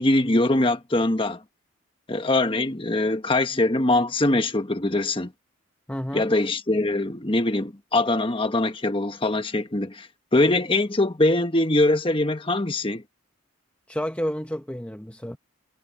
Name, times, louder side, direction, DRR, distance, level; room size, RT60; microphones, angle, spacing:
voice 1, 0.0-1.4 2.1-5.3 6.1-13.0, left 2 dB, 25° left, 1.2 m, -22 dB
voice 2, 5.9-6.3 13.9-15.4, equal, 5° left, 0.9 m, -30 dB
head